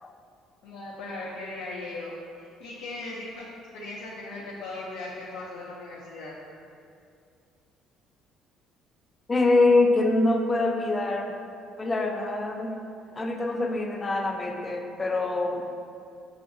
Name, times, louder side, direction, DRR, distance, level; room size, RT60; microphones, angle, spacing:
voice 1, 0.6-2.1 2.4-3.5 3.7-6.4, left 2 dB, 90° left, -5 dB, 0.5 m, -38 dB
voice 2, 9.3-11.4 11.8-12.8 13.1-15.7, left 2 dB, 20° left, 2 dB, 0.4 m, -24 dB
5.6 x 2.4 x 2.5 m, 2.4 s
cardioid pair, 110°, 0 cm